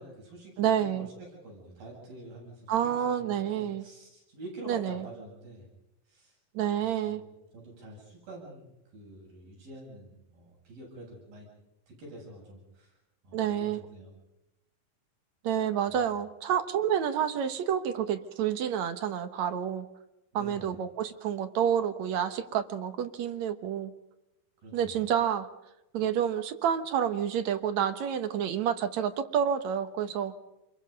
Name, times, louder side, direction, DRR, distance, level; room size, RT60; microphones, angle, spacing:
voice 1, 0.0-3.3 3.6-5.7 6.1-6.4 6.7-11.5 11.9-13.0 13.2-14.1 15.8-15.9 20.3-20.8 24.6-25.0, right 1 dB, 85° right, -1 dB, 9.8 m, -47 dB
voice 2, 0.6-1.1 2.7-3.8 4.7-5.0 6.5-7.2 13.3-13.8 15.4-19.9 20.3-23.9 24.7-25.5 25.9-30.3, right 9 dB, 60° right, 10 dB, 2.2 m, -29 dB
28.5 x 22.5 x 5.3 m, 0.94 s
omnidirectional pair, 4.0 m